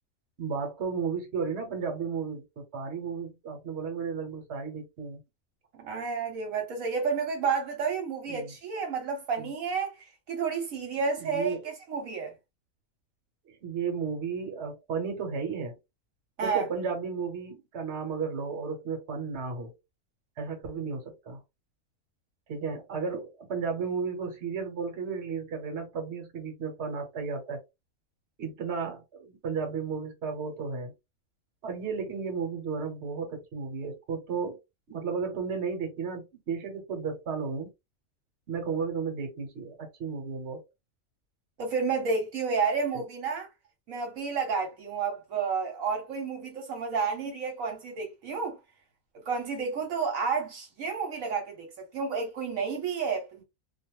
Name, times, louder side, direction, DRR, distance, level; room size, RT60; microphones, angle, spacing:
voice 1, 0.4-5.2 8.3-8.5 9.4-9.5 11.2-11.6 13.5-15.8 16.4-19.7 20.4-21.4 22.5-27.6 28.4-30.9 31.6-34.6 34.9-37.7 38.5-40.6, right 5 dB, 55° right, 1.2 m, -33 dB
voice 2, 5.8-12.3 16.4-16.7 41.6-43.5 43.9-48.6 49.3-53.4, right 5 dB, 75° right, 1.3 m, -31 dB
2.5 x 2.3 x 2.9 m
omnidirectional pair, 1.4 m